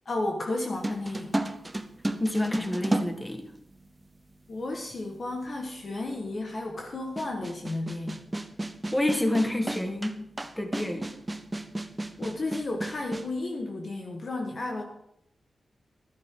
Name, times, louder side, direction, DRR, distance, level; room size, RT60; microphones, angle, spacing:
voice 1, 0.0-1.5 4.5-8.2 12.2-14.8, left 2 dB, 45° left, 1 dB, 1.4 m, -33 dB
sound 1, 0.8-4.0 4.9-5.0 7.2-13.3, right 1 dB, 15° right, 0.8 m, -32 dB
voice 2, 2.2-3.5 8.9-10.2 10.6-11.2, left 1 dB, 10° left, 5 dB, 1.5 m, -28 dB
14.5 x 12.5 x 3.8 m, 0.78 s
wide cardioid pair, 160°, 0 cm